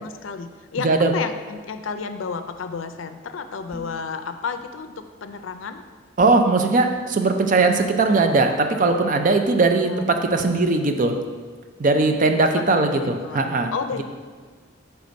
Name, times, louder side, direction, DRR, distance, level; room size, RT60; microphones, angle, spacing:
voice 1, 0.0-5.8 9.8-10.1 12.6-13.4 13.7-14.0, left 5 dB, 80° left, 9 dB, 0.4 m, -32 dB
sound 1, 3.7-4.1 6.2-6.5, left 2 dB, 15° left, 0.8 m, -39 dB
voice 2, 6.2-11.1 11.8-13.7, right 3 dB, 40° right, 5 dB, 0.5 m, -19 dB
6.7 x 3.4 x 5.1 m, 1.5 s
head